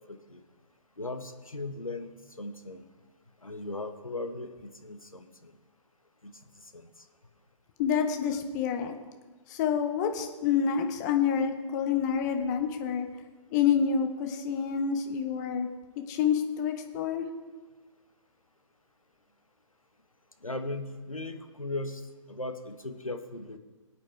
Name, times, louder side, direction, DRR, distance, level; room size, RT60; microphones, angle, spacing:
voice 1, 0.1-0.4 1.0-2.8 3.4-5.5 6.2-6.3 6.7-6.9 20.4-22.0 22.3-23.6, left 2 dB, 90° left, 7 dB, 1.3 m, -38 dB
voice 2, 7.8-9.0 9.5-13.1 13.5-15.7 16.1-17.3, left 7 dB, 35° left, 5 dB, 1.4 m, -28 dB
22.5 x 8.6 x 3.5 m, 1.3 s
figure-of-eight pair, 125°, 17 cm